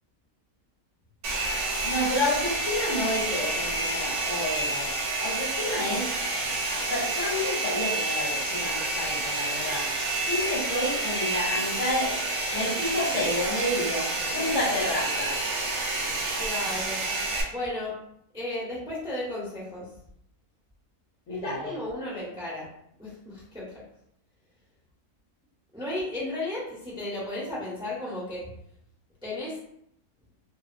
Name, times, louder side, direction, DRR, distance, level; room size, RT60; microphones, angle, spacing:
Domestic sounds home sounds, 1.2-17.4, right 2 dB, 60° right, 0.9 m, -29 dB
voice 1, 1.8-4.9 5.2-6.1 6.4-9.9 10.2-12.2 12.5-15.4 21.3-21.8, left 1 dB, 55° left, -4 dB, 1.1 m, -30 dB
voice 2, 16.4-17.0 17.5-18.0 18.3-19.9 21.3-22.7 23.0-23.8 25.7-28.5 29.2-29.6, left 1 dB, 5° right, -7 dB, 0.5 m, -34 dB
2.6 x 2.6 x 2.5 m, 0.73 s
omnidirectional pair, 1.6 m